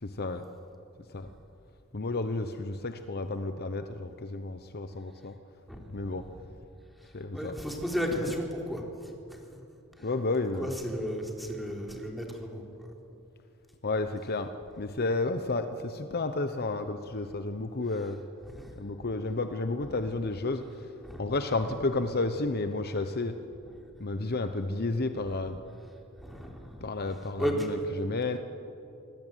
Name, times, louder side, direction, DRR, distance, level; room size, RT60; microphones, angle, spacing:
voice 1, 0.0-0.4 1.1-1.3 1.9-5.3 5.9-6.3 7.1-7.5 8.2-8.4 10.0-10.7 13.8-18.2 18.8-20.6 21.2-23.3 24.0-25.6 26.8-28.4, left 3 dB, 45° left, 8 dB, 1.0 m, -31 dB
voice 2, 5.7-6.1 7.0-9.4 10.0-10.1 10.6-12.9 18.4-18.7 21.0-21.2 25.3-25.4 26.2-26.8 27.4-27.7, equal, ahead, 0 dB, 4.0 m, -34 dB
26.0 x 20.0 x 9.2 m, 2.7 s
head